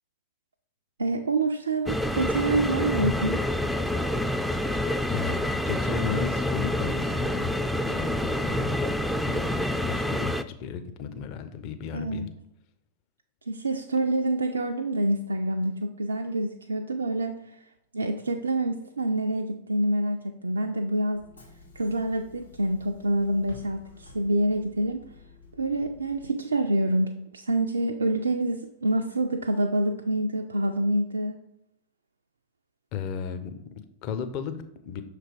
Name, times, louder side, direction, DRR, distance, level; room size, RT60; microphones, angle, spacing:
voice 1, 1.0-3.4 11.9-12.3 13.5-17.6 17.9-21.2 21.8-25.1 25.6-31.4, right 1 dB, 75° right, 5 dB, 0.3 m, -27 dB
sound 1, 1.9-10.4, left 1 dB, ahead, 0.3 m, -27 dB
voice 2, 5.1-7.5 7.9-8.7 9.2-12.3 32.9-35.0, left 7 dB, 40° left, 9 dB, 0.6 m, -35 dB
Bus / Engine, 21.1-26.3, left 4 dB, 85° left, 1.6 m, -51 dB
6.1 x 3.3 x 4.7 m, 0.79 s
figure-of-eight pair, 90°, 0 cm